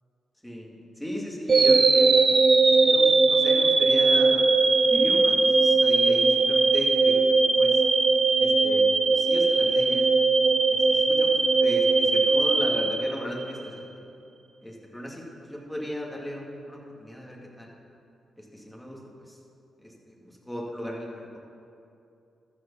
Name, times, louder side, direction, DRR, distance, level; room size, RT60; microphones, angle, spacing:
voice 1, 0.4-2.3 2.8-4.4 4.9-7.8 8.4-10.1 10.7-11.3 11.6-13.9 14.6-17.7 18.5-19.0 19.8-20.1 20.5-21.4, equal, 5° left, -3 dB, 2.3 m, -36 dB
sound 1, 1.5-13.6, right 3 dB, 45° right, 0.8 m, -20 dB
14.0 x 5.0 x 5.7 m, 2.6 s
supercardioid pair, 50°, 0 cm